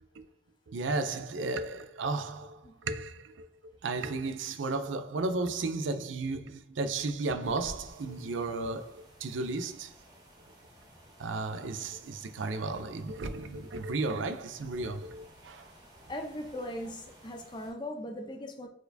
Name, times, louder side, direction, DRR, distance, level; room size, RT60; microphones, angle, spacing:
voice 1, 0.7-3.5 3.8-9.9 11.2-15.7, right 3 dB, 90° right, 0.5 m, -34 dB
sound 1, 7.4-17.7, equal, 20° right, 1.1 m, -55 dB
voice 2, 16.1-18.7, left 1 dB, 25° left, 0.6 m, -39 dB
4.5 x 4.3 x 2.6 m
head